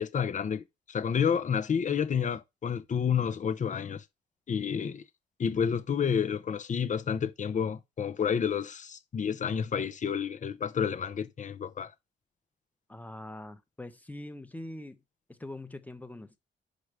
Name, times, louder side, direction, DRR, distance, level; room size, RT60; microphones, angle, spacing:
voice 1, 0.0-4.0 4.5-5.0 5.4-11.9, left 7 dB, 45° left, 0.9 m, -30 dB
voice 2, 12.9-15.0 15.3-16.4, left 1 dB, 10° left, 1.2 m, -43 dB
6.6 x 5.3 x 4.8 m
cardioid pair, 80°, 18 cm